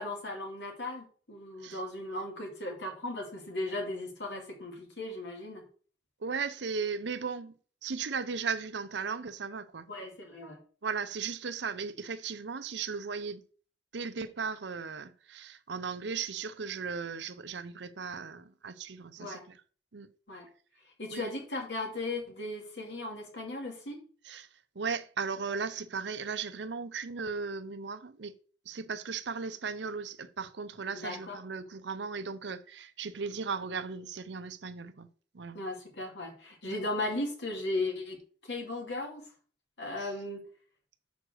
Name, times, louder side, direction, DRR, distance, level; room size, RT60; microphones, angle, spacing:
voice 1, 0.0-5.7 9.9-10.6 19.2-19.4 20.3-20.5 21.0-24.0 30.9-31.4 35.5-39.3 39.8-40.4, left 2 dB, 70° left, 2.4 m, -37 dB
voice 2, 6.2-7.5 7.8-9.9 10.8-13.4 13.9-19.6 19.9-20.1 21.1-21.3 24.2-24.5 24.7-28.3 28.7-35.1 35.3-35.6 36.7-36.8 40.0-40.1, right 5 dB, 75° right, 0.7 m, -36 dB
6.6 x 5.1 x 6.2 m
head